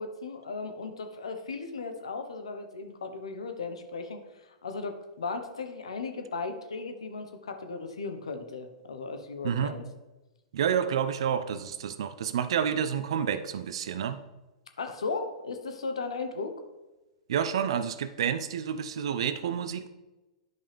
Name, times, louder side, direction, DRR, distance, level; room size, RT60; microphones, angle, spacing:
voice 1, 0.0-4.2 4.6-9.8 14.8-16.6, left 4 dB, 80° left, 6 dB, 1.2 m, -36 dB
voice 2, 9.4-9.7 10.5-14.2 17.3-19.9, right 8 dB, 65° right, 12 dB, 0.7 m, -29 dB
10.5 x 5.6 x 3.4 m, 1.1 s
hypercardioid pair, 110°, 3 cm